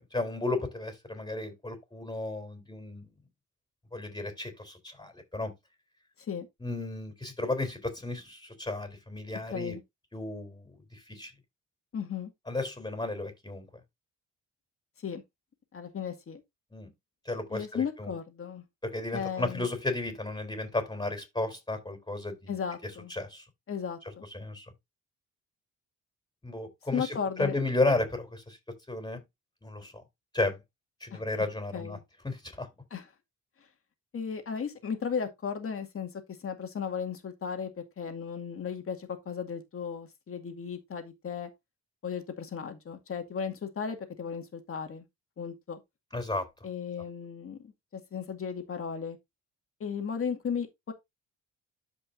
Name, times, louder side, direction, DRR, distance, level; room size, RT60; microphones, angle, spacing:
voice 1, 0.0-3.1 3.9-5.5 6.6-9.8 10.1-11.3 12.5-13.7 16.7-16.9 17.3-18.1 18.8-22.6 22.8-23.4 24.3-24.7 26.4-28.6 28.9-29.2 29.6-30.0 30.3-30.6 31.0-32.0 32.2-32.7 46.1-46.5, left 2 dB, 15° left, 3.8 m, -33 dB
voice 2, 9.5-9.8 11.9-12.3 15.0-15.2 15.7-16.4 17.5-18.6 19.1-19.7 22.5-23.1 23.7-24.2 26.9-27.6 31.1-31.2 31.7-32.0 32.9-33.1 34.1-36.1 36.4-41.5 42.0-45.0 45.4-45.8 46.6-49.2 49.8-50.9, left 6 dB, 45° left, 2.2 m, -35 dB
13.0 x 5.3 x 2.6 m
cardioid pair, 90°, 30 cm